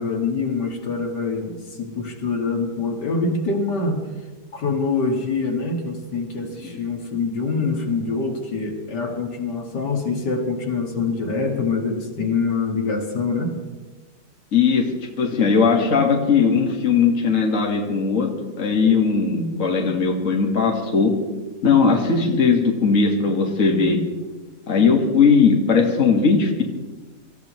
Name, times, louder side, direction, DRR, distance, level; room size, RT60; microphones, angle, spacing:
voice 1, 0.0-4.0 4.5-13.6, left 4 dB, 80° left, 2 dB, 2.5 m, -25 dB
voice 2, 14.5-14.9 15.2-18.3 18.6-21.1 21.6-24.0 24.7-26.6, left 5 dB, 50° left, 1 dB, 2.0 m, -18 dB
26.0 x 14.5 x 3.1 m, 1.3 s
omnidirectional pair, 1.8 m